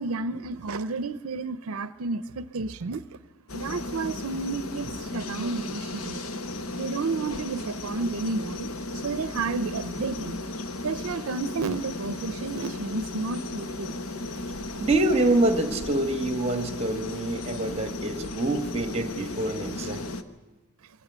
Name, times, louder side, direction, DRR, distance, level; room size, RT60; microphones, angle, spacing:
voice 1, 0.0-3.0 3.5-6.2 6.8-10.4 10.8-14.0, right 3 dB, 85° right, 14 dB, 0.6 m, -31 dB
sound 1, 3.5-20.2, left 2 dB, 80° left, 1.1 m, -35 dB
voice 2, 14.8-20.1, right 1 dB, 30° right, 8 dB, 1.3 m, -26 dB
21.5 x 18.0 x 8.0 m, 1.2 s
head